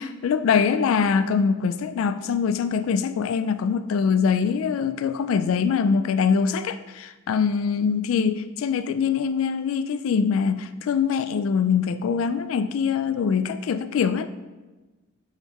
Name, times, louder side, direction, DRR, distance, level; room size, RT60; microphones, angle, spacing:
voice 1, 0.0-14.3, left 6 dB, 85° left, 12 dB, 0.3 m, -23 dB
8.2 x 3.6 x 4.1 m, 1.2 s
head